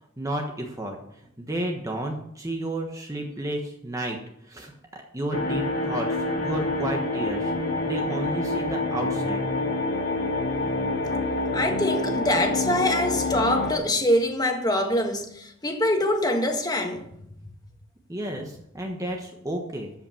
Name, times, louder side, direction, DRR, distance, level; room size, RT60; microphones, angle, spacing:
voice 1, 0.2-1.0 1.4-4.2 4.4-7.5 7.8-9.4 18.1-19.9, right 1 dB, 15° right, 1.2 m, -32 dB
sound 1, 5.3-13.7, left 2 dB, 55° left, 2.0 m, -27 dB
voice 2, 11.5-17.0, left 1 dB, 20° left, 1.5 m, -24 dB
13.0 x 5.7 x 7.0 m
head